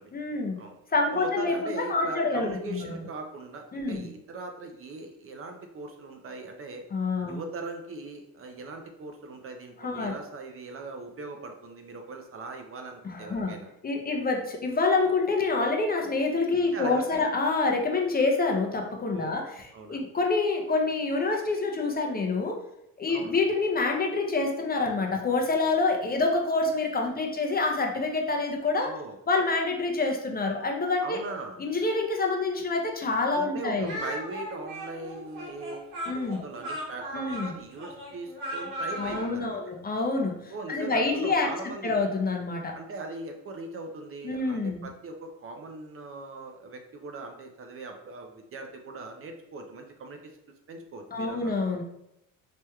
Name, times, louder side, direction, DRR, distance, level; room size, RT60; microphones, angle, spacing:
voice 1, 0.1-0.6 0.9-2.8 3.7-4.1 6.9-7.4 9.8-10.1 13.0-13.5 13.8-22.6 23.0-28.9 29.3-31.2 31.6-33.9 36.1-36.4 37.1-37.5 39.0-41.5 41.8-42.7 44.2-44.9 51.1-51.8, left 3 dB, 25° left, 2 dB, 0.6 m, -27 dB
voice 2, 1.1-6.8 7.3-13.7 16.7-17.3 19.1-19.4 19.7-20.0 23.1-23.4 28.8-29.2 31.0-31.6 33.3-39.7 40.5-42.0 42.7-50.3 50.7-51.5, right 3 dB, 35° right, 4 dB, 0.5 m, -40 dB
Speech, 33.8-39.3, equal, 85° right, 1.3 m, -37 dB
3.3 x 2.9 x 2.3 m, 0.81 s
supercardioid pair, 70°, 37 cm